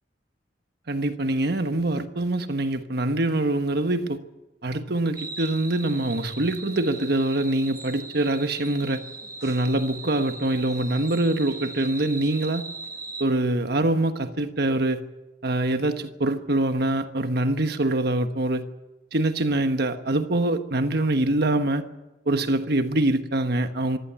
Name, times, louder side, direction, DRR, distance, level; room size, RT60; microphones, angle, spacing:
voice 1, 0.9-4.2 4.6-9.0 9.4-12.7 13.2-15.0 15.4-18.7 19.1-21.8 22.3-24.0, right 2 dB, 55° right, 1.3 m, -24 dB
sound 1, 5.1-13.2, right 3 dB, 15° right, 1.4 m, -39 dB
24.5 x 15.0 x 8.7 m
head